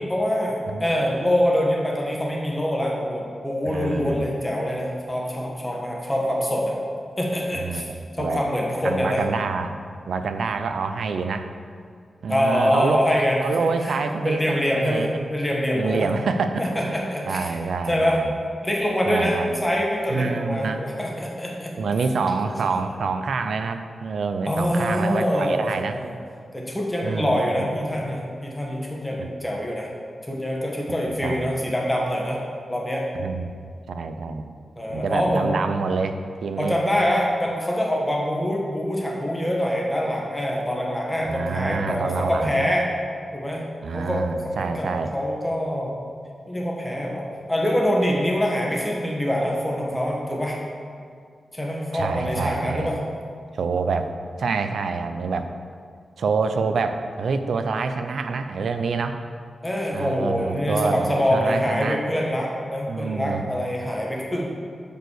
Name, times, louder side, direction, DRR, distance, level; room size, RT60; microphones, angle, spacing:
voice 1, 0.1-6.7 7.2-7.8 8.2-9.2 12.3-13.5 13.8-14.0 14.2-16.1 16.6-17.5 17.9-18.2 18.6-21.7 22.5-22.6 24.4-26.1 26.5-29.9 30.2-32.4 32.7-33.1 34.8-35.6 36.6-42.9 43.3-43.6 43.9-44.3 44.6-46.0 46.5-50.6 51.5-53.0 59.6-64.5, equal, 10° left, -2 dB, 1.3 m, -25 dB
voice 2, 3.7-4.3 7.5-7.9 8.2-8.4 8.8-9.8 10.1-11.5 12.2-13.1 13.4-15.1 15.8-16.9 17.3-18.3 19.1-19.6 20.1-20.8 21.8-26.0 27.0-27.7 29.2-29.3 31.1-31.5 33.2-33.5 33.9-34.4 34.9-36.8 41.2-42.7 43.8-45.1 51.9-53.0 53.6-54.1 54.4-55.5 56.2-59.2 59.9-62.0 62.9-63.5, right 4 dB, 70° right, 8 dB, 0.5 m, -27 dB
7.8 x 5.5 x 6.4 m, 2.2 s
wide cardioid pair, 180°, 0 cm